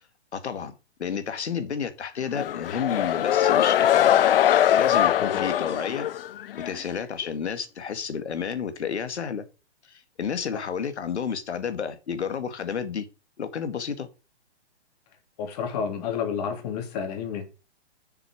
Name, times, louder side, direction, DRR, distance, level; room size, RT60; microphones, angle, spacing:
voice 1, 0.3-0.7 1.0-4.2 4.8-6.1 6.7-9.4 9.9-13.1 13.4-14.1, left 7 dB, 80° left, 2.1 m, -31 dB
sound 1, 2.3-6.8, left 11 dB, 60° left, 0.5 m, -22 dB
voice 2, 15.4-17.5, left 7 dB, 35° left, 2.9 m, -30 dB
7.1 x 6.9 x 6.2 m
hypercardioid pair, 150°, 33 cm